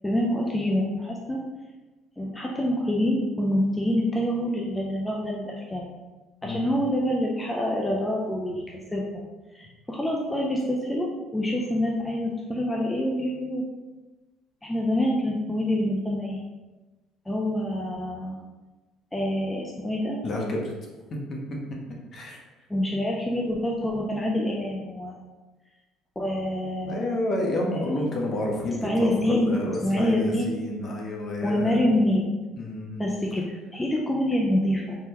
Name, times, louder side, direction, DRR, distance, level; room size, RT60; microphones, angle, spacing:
voice 1, 0.0-1.4 2.2-5.9 6.4-8.6 8.9-9.2 9.5-11.1 11.3-13.6 14.6-16.4 17.3-18.4 19.1-20.2 22.7-25.2 26.2-27.1 27.7-27.8 28.8-29.5 29.8-30.5 31.4-32.3 33.0-35.0, left 1 dB, 10° left, -2 dB, 0.4 m, -26 dB
voice 2, 6.4-6.7 20.2-20.7 21.3-21.4 22.1-22.4 26.8-31.8 32.5-33.0, left 1 dB, 40° left, -1 dB, 0.7 m, -29 dB
3.6 x 2.1 x 2.8 m, 1.2 s
cardioid pair, 115°, 0 cm